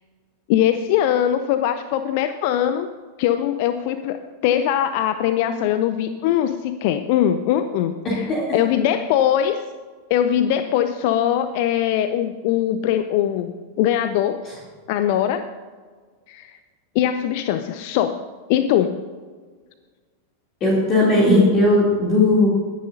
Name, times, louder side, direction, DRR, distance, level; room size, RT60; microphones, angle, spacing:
voice 1, 0.5-2.9 3.2-9.6 10.1-14.4 14.9-15.5 16.3-16.6 16.9-18.2 18.5-19.0, left 10 dB, 50° left, 10 dB, 0.5 m, -21 dB
voice 2, 8.0-8.5 20.6-22.5, left 1 dB, 30° left, -4 dB, 3.1 m, -17 dB
20.5 x 10.5 x 2.8 m, 1.5 s
figure-of-eight pair, 90°, 0 cm